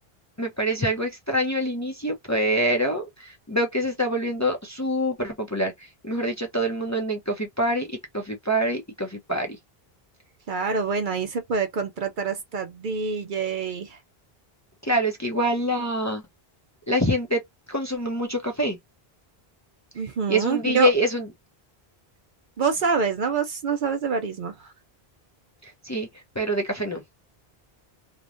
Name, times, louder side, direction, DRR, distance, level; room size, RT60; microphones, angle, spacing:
voice 1, 0.4-9.6 14.8-16.2 16.9-17.4 17.7-18.8 20.3-21.3 25.6-26.1 26.4-27.0, equal, 20° left, 0.6 m, -25 dB
voice 2, 10.5-14.0 20.0-20.9 22.6-24.5, right 5 dB, 60° right, 0.7 m, -26 dB
3.0 x 2.1 x 2.4 m
omnidirectional pair, 1.0 m